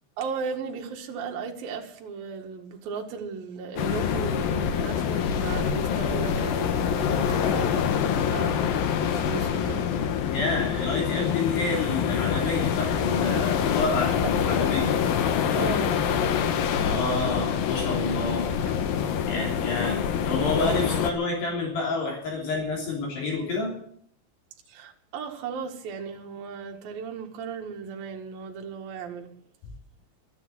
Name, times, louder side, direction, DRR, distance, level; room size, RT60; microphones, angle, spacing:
voice 1, 0.2-9.9 12.4-12.6 13.6-13.7 14.8-14.9 15.5-16.1 18.6-18.7 24.7-29.3, right 5 dB, 60° right, 3.0 m, -36 dB
sound 1, 3.8-21.1, left 8 dB, 75° left, 2.2 m, -26 dB
voice 2, 10.3-14.9 16.7-18.5 19.3-23.8, left 3 dB, 60° left, 5.2 m, -29 dB
12.0 x 10.5 x 9.4 m
omnidirectional pair, 5.5 m